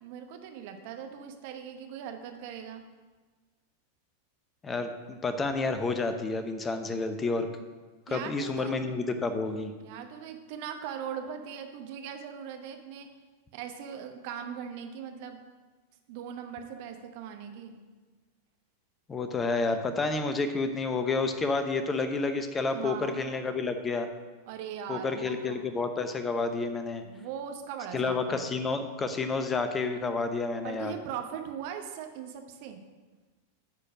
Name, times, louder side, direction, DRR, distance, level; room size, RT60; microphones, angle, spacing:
voice 1, 0.0-2.8 8.1-8.8 9.8-13.1 13.5-15.4 16.1-17.8 22.7-23.2 24.5-25.6 27.0-28.5 30.6-32.8, right 8 dB, 50° right, 5 dB, 1.0 m, -40 dB
voice 2, 4.6-7.5 8.1-9.7 19.1-24.1 24.9-27.0 27.9-30.9, left 3 dB, 20° left, 8 dB, 0.8 m, -30 dB
9.6 x 4.4 x 6.4 m, 1.3 s
figure-of-eight pair, 90°, 0 cm